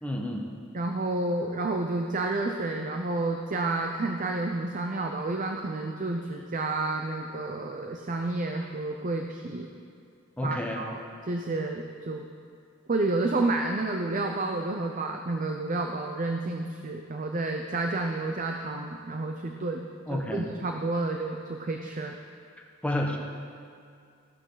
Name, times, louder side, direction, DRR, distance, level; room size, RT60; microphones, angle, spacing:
voice 1, 0.0-0.5 10.4-10.8 20.1-20.5 22.8-23.2, left 1 dB, 5° left, 0 dB, 1.2 m, -30 dB
voice 2, 0.7-9.7 10.4-11.0 11.3-12.3 12.9-19.8 20.1-22.1, right 2 dB, 40° right, 3 dB, 0.7 m, -30 dB
14.5 x 12.5 x 4.0 m, 2.3 s
head